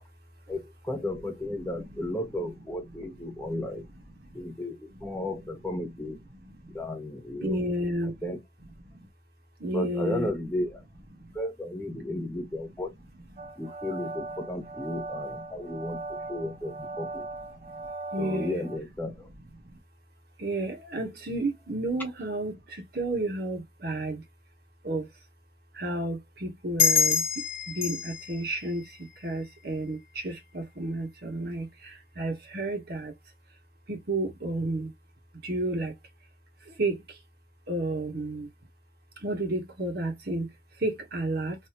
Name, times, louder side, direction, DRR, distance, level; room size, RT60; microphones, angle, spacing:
voice 1, 0.5-3.9 4.3-6.2 6.7-7.6 8.2-8.4 9.7-10.8 11.3-12.9 13.6-17.2 18.2-19.3, left 1 dB, 10° left, 0.8 m, -34 dB
voice 2, 7.4-8.3 8.8-9.1 9.6-10.3 11.2-11.4 13.3-13.5 15.5-15.6 16.9-17.0 17.5-18.6 19.6-19.8 20.4-24.2 24.8-25.1 25.7-27.2 27.7-33.1 33.9-34.9 35.4-35.9 36.6-37.2 37.7-38.5 39.2-40.5 40.8-41.6, right 2 dB, 50° right, 1.1 m, -32 dB
sound 1, 13.4-18.8, right 2 dB, 35° right, 0.5 m, -39 dB
sound 2, 26.8-29.9, left 6 dB, 75° left, 1.1 m, -27 dB
3.3 x 2.6 x 2.8 m
head